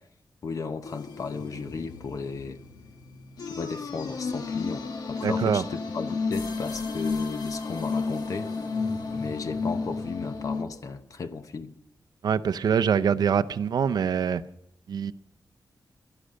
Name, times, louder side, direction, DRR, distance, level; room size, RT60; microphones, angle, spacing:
voice 1, 0.4-2.6 3.5-8.5 9.1-11.8, left 5 dB, 55° left, 0.9 m, -35 dB
sound 1, 0.8-10.6, left 4 dB, 85° left, 1.7 m, -32 dB
voice 2, 5.2-5.6 12.2-14.4 14.9-15.1, right 7 dB, 85° right, 0.6 m, -24 dB
16.5 x 11.5 x 6.4 m
wide cardioid pair, 170°, 7 cm